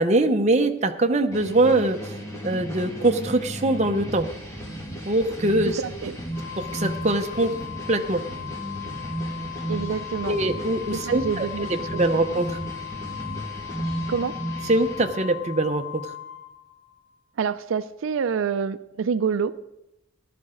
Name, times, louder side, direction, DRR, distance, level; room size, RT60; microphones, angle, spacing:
voice 1, 0.0-2.0 2.4-4.3 5.1-5.8 6.6-7.5 7.9-8.3 10.3-12.6 14.7-16.0, right 2 dB, 35° right, 5 dB, 0.8 m, -23 dB
sound 1, 1.3-15.0, right 1 dB, 15° left, 2.0 m, -34 dB
voice 2, 5.6-6.1 9.7-10.4 10.9-12.2 14.1-14.3 17.4-19.6, right 6 dB, 90° right, 14 dB, 0.4 m, -27 dB
Organ, 6.3-17.1, left 12 dB, 30° left, 4.2 m, -38 dB
15.0 x 12.0 x 3.8 m, 0.90 s
head